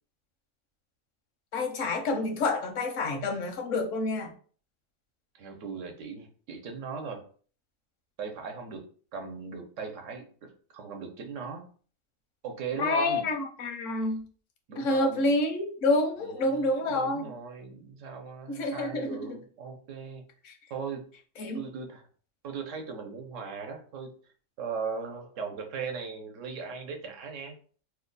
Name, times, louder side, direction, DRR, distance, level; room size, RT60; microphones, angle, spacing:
voice 1, 1.5-4.3 12.8-14.2 14.8-17.2 18.5-19.4 20.4-20.5 21.4-21.6, left 2 dB, 85° left, 5 dB, 1.1 m, -28 dB
voice 2, 5.3-7.2 8.2-8.8 9.1-11.6 12.4-13.3 14.7-15.3 16.2-20.3 20.7-21.0 21.5-22.1 22.4-24.1 24.6-27.6, right 5 dB, 80° right, 3 dB, 1.1 m, -38 dB
3.0 x 2.2 x 3.8 m, 0.43 s
omnidirectional pair, 1.3 m